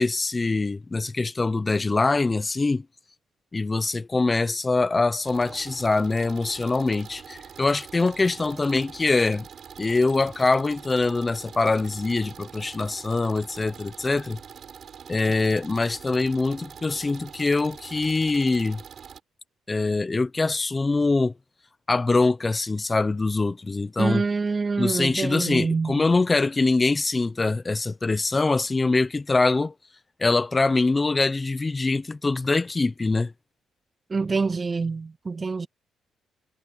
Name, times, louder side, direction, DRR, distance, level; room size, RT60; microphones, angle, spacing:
voice 1, 0.0-2.8 3.5-9.4 9.8-14.4 15.1-18.8 19.7-21.3 21.9-24.2 24.8-29.7 30.2-33.3, left 3 dB, 25° left, 0.8 m, -23 dB
sound 1, 5.2-19.2, right 7 dB, 55° right, 5.0 m, -44 dB
voice 2, 24.0-26.0 34.1-35.7, right 4 dB, 30° right, 0.4 m, -26 dB
cardioid pair, 90°, 0 cm